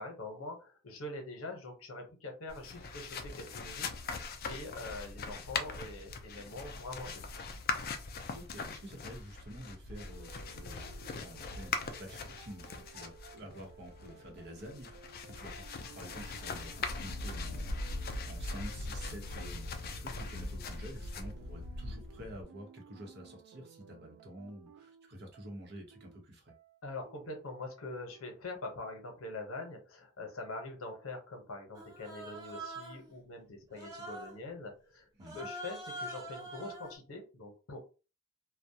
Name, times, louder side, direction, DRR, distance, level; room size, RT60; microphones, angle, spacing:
voice 1, 0.0-7.2 26.8-35.1 35.3-37.9, left 2 dB, 85° left, 3 dB, 0.8 m, -44 dB
sound 1, 2.5-22.4, left 3 dB, 45° left, 0.4 m, -41 dB
voice 2, 8.3-26.5 35.2-35.4, equal, 55° right, 2 dB, 0.8 m, -49 dB
sound 2, 9.9-28.2, right 7 dB, 90° right, 0.3 m, -57 dB
Human voice, 31.7-33.1 33.7-34.4 35.2-37.0, right 1 dB, 20° right, 0.7 m, -44 dB
2.3 x 2.1 x 2.7 m, 0.33 s
head